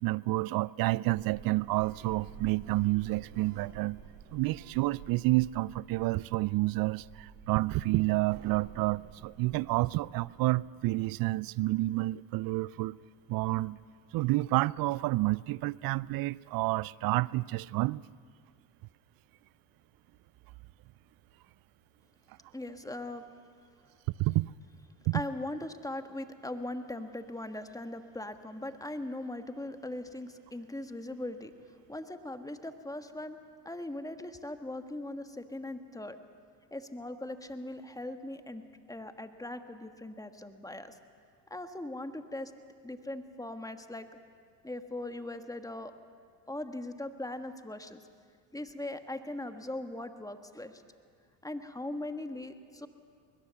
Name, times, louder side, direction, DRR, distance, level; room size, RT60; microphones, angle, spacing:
voice 1, 0.0-4.0 4.3-13.0 13.3-13.8 14.1-18.0 24.2-24.5 25.1-25.2, right 19 dB, 50° right, 0.5 m, -29 dB
Sliding door, 1.1-10.6, right 7 dB, 70° right, 3.0 m, -51 dB
voice 2, 22.5-23.2 25.1-31.5 31.9-33.4 33.6-36.2 36.7-38.6 38.9-41.0 41.5-42.5 42.8-44.1 44.6-45.9 46.5-48.0 48.5-50.8 51.4-52.9, left 1 dB, 5° left, 1.6 m, -40 dB
21.5 x 20.5 x 7.1 m
hypercardioid pair, 70°, 48 cm